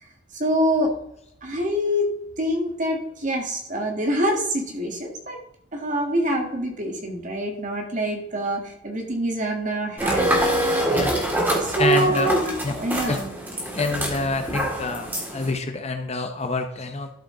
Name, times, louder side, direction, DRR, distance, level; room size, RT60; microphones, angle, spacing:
voice 1, 0.3-0.9 1.4-2.1 2.4-5.4 5.7-10.4 11.6-13.3, right 1 dB, 40° right, 2 dB, 1.7 m, -25 dB
sound 1, 10.0-15.5, right 1 dB, 10° right, 1.7 m, -25 dB
voice 2, 11.8-12.4 12.6-12.7 13.1-13.2 13.7-17.1, left 3 dB, 30° left, 6 dB, 0.7 m, -26 dB
12.0 x 5.0 x 3.8 m, 0.76 s
head